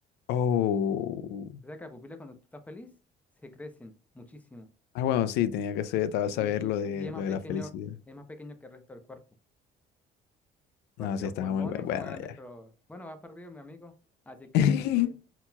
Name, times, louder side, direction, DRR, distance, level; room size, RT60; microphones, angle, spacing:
voice 1, 0.3-1.5 4.9-7.9 11.0-12.3 14.5-15.1, left 9 dB, 85° left, 0.4 m, -28 dB
voice 2, 1.6-2.9 3.4-4.7 6.3-7.7 8.1-9.2 11.0-13.9 14.3-14.8, left 1 dB, 10° left, 0.7 m, -45 dB
4.1 x 4.0 x 2.2 m
cardioid pair, 110°, 17 cm